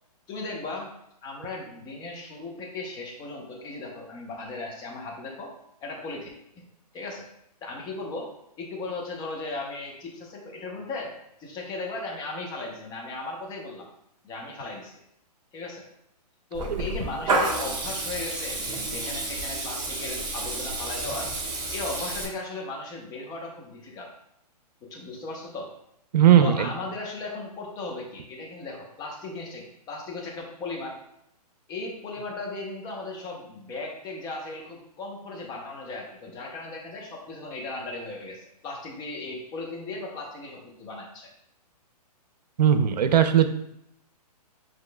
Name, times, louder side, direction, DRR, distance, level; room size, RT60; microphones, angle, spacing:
voice 1, 0.3-0.9 1.2-5.5 5.8-6.3 6.6-6.7 6.9-7.3 7.6-8.3 8.6-11.1 11.4-13.9 14.2-15.0 15.5-15.8 16.5-24.1 24.9-25.7 26.4-31.0 31.7-41.3, left 3 dB, 20° left, -1 dB, 0.8 m, -36 dB
Water tap faucet / Liquid, 16.5-22.2, right 2 dB, 20° right, 1.3 m, -30 dB
voice 2, 26.1-26.7 42.6-43.5, right 9 dB, 80° right, 9 dB, 0.6 m, -18 dB
7.3 x 3.1 x 2.2 m, 0.77 s
hypercardioid pair, 145°, 21 cm